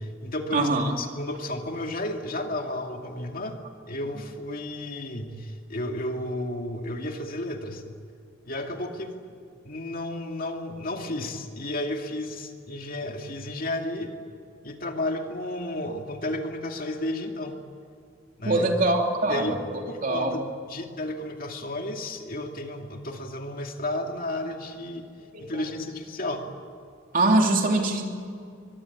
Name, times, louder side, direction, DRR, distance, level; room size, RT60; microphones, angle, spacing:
voice 1, 0.0-0.7 1.0-3.6 3.9-7.8 8.4-9.1 9.6-14.1 14.6-17.5 18.4-18.6 19.3-19.5 19.8-20.4 20.7-25.0 25.4-26.4, left 1 dB, 45° left, 3 dB, 2.5 m, -32 dB
voice 2, 0.5-1.0 18.4-19.6 20.0-20.4 25.3-25.6 27.1-28.0, right 2 dB, 45° right, 2 dB, 3.2 m, -23 dB
24.0 x 22.5 x 8.5 m, 2.4 s
head